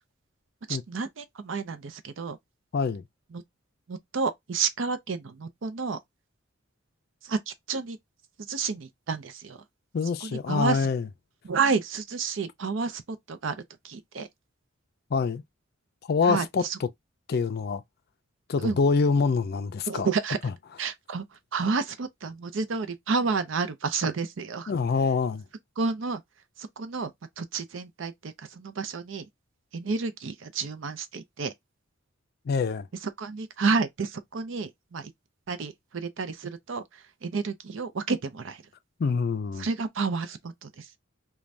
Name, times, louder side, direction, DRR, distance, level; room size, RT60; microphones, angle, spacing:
voice 1, 0.7-2.4 3.3-3.4 3.9-6.0 7.2-8.0 8.5-9.6 10.2-10.9 11.4-13.0 13.3-14.3 16.2-16.8 18.6-18.8 19.9-20.4 20.8-21.2 21.5-24.7 25.8-26.2 26.6-27.1 27.4-29.3 29.7-31.5 33.0-35.1 35.5-38.6 39.6-40.9, right 4 dB, 70° right, 0.5 m, -30 dB
voice 2, 2.7-3.0 9.9-11.1 15.1-15.4 16.1-16.9 17.3-17.8 18.5-20.1 20.4-20.5 24.7-25.4 32.5-32.9 39.0-39.7, left 5 dB, 50° left, 0.4 m, -25 dB
2.5 x 2.2 x 3.1 m
head